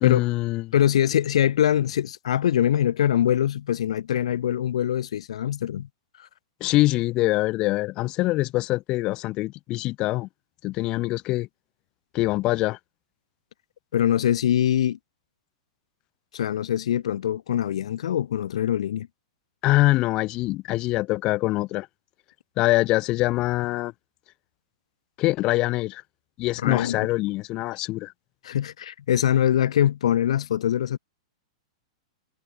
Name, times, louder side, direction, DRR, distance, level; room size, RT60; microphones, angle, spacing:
voice 1, 0.0-0.7 6.6-10.3 10.6-11.5 12.1-12.8 19.6-21.9 22.6-23.9 25.2-26.0 26.4-28.1, left 19 dB, 25° left, 1.4 m, -24 dB
voice 2, 0.7-5.9 6.2-6.3 13.9-15.0 16.3-19.1 26.6-27.1 28.4-31.0, left 10 dB, 70° left, 1.0 m, -23 dB
supercardioid pair, 175°, 3 cm